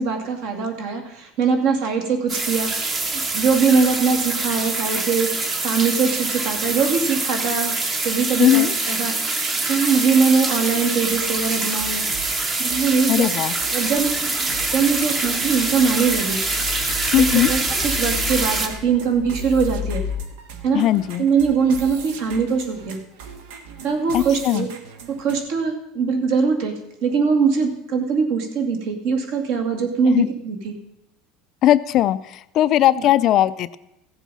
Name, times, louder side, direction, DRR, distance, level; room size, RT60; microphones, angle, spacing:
voice 1, 0.0-2.7 3.1-5.3 5.6-7.7 8.0-12.0 12.5-13.3 13.7-14.1 14.7-16.4 17.2-20.0 20.6-20.8 21.2-23.0 23.8-24.7 25.1-30.7, right 5 dB, 55° right, 4 dB, 2.2 m, -22 dB
sound 1, 2.3-18.7, right 3 dB, 20° right, 1.0 m, -25 dB
voice 2, 8.4-8.7 13.1-13.5 17.1-17.5 20.7-21.2 24.1-24.7 30.1-30.3 31.6-33.8, left 13 dB, 35° left, 14 dB, 0.3 m, -18 dB
sound 2, 11.1-25.4, right 6 dB, 75° right, 1.6 m, -40 dB
sound 3, 13.4-20.2, left 8 dB, 10° left, 0.7 m, -34 dB
15.5 x 7.3 x 5.5 m, 0.86 s
cardioid pair, 165°, 0 cm